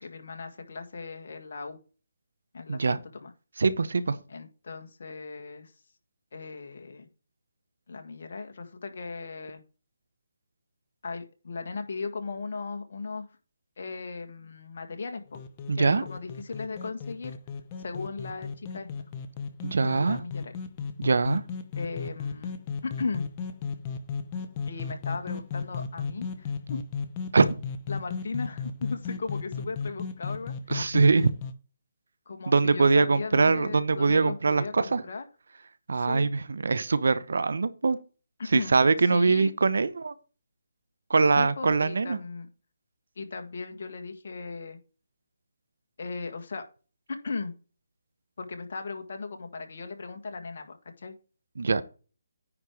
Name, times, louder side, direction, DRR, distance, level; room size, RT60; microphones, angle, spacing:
voice 1, 0.0-1.8 2.5-3.3 4.3-5.7 6.3-7.1 7.9-9.6 11.0-13.3 13.8-15.4 15.8-17.4 17.8-19.1 19.8-20.6 21.8-22.5 22.8-23.3 24.7-26.8 27.9-30.5 32.3-35.2 35.9-36.3 38.4-38.7 39.1-39.5 41.4-42.5 43.2-44.8 46.0-46.6 47.1-47.5 48.4-51.2, left 4 dB, 55° left, 1.7 m, -37 dB
voice 2, 3.6-4.2 15.7-16.0 19.6-20.2 21.0-21.4 27.3-27.5 30.7-31.3 32.5-35.0 35.9-38.0 38.5-40.1 41.1-42.2 51.6-51.8, right 4 dB, 70° right, 1.0 m, -23 dB
sound 1, 15.3-31.5, left 5 dB, 25° left, 1.0 m, -35 dB
9.8 x 4.7 x 4.9 m
figure-of-eight pair, 155°, 0 cm